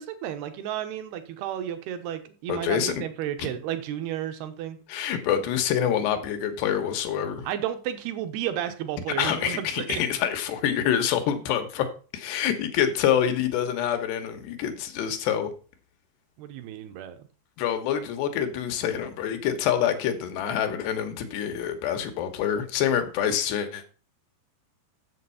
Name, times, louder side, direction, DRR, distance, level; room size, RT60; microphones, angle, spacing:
voice 1, 0.0-4.8 7.4-10.0 16.4-17.2, right 11 dB, 75° right, 2.7 m, -32 dB
voice 2, 2.5-2.9 4.9-7.5 9.2-11.9 12.1-15.5 17.6-23.8, left 9 dB, 75° left, 3.1 m, -26 dB
7.8 x 7.4 x 5.5 m
omnidirectional pair, 5.1 m